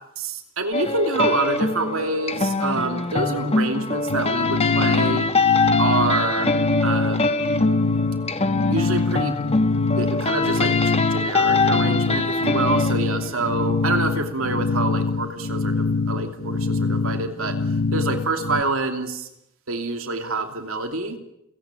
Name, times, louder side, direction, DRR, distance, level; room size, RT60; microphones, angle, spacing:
voice 1, 0.2-5.3 5.8-6.5 6.8-7.5 8.7-9.4 9.7-17.6 17.9-19.3 19.7-21.2, right 3 dB, 70° right, 6 dB, 2.9 m, -26 dB
sound 1, 0.7-13.9, left 3 dB, 30° left, 1.3 m, -24 dB
sound 2, 4.1-18.6, left 3 dB, 60° left, 0.9 m, -24 dB
29.5 x 17.5 x 9.0 m, 0.83 s
head